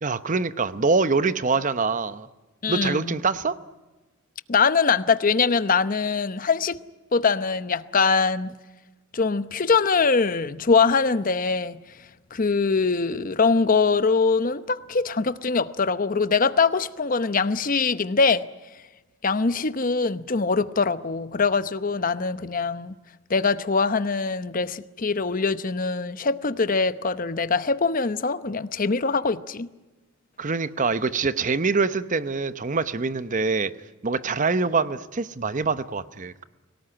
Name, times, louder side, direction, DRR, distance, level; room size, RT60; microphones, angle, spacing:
voice 1, 0.0-2.3 2.7-3.6 30.4-33.7 34.0-36.4, right 4 dB, 40° right, 0.8 m, -24 dB
voice 2, 2.6-3.2 4.5-6.8 7.1-8.6 9.1-11.8 12.3-18.5 19.2-22.9 23.3-29.7, left 4 dB, 45° left, 0.8 m, -23 dB
24.0 x 18.5 x 10.0 m
head